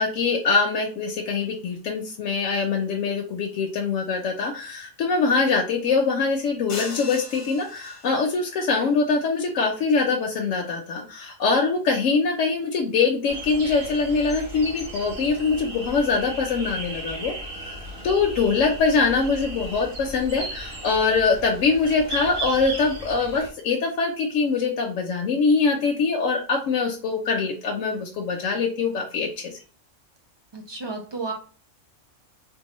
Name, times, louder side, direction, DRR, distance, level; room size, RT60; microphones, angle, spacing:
voice 1, 0.0-29.6, left 4 dB, 80° left, 0 dB, 1.0 m, -23 dB
sound 1, 6.7-8.5, left 3 dB, 50° left, 0.4 m, -38 dB
sound 2, 13.3-23.5, right 1 dB, 50° right, 1.2 m, -36 dB
voice 2, 30.5-31.3, right 3 dB, 30° right, 2 dB, 0.5 m, -32 dB
3.8 x 2.4 x 2.9 m, 0.39 s
omnidirectional pair, 1.3 m